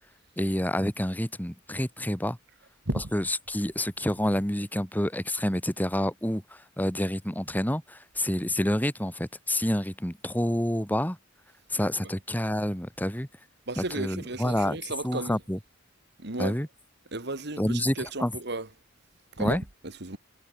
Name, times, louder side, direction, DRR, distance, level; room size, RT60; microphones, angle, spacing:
voice 1, 0.4-2.4 3.1-11.2 11.7-13.3 13.8-14.8 15.0-15.6 16.4-16.7 17.6-18.3 19.4-19.6, left 1 dB, 10° left, 2.8 m, -28 dB
voice 2, 13.7-15.4 16.2-16.6 17.1-18.7 19.4-20.2, right 2 dB, 55° right, 2.4 m, -34 dB
head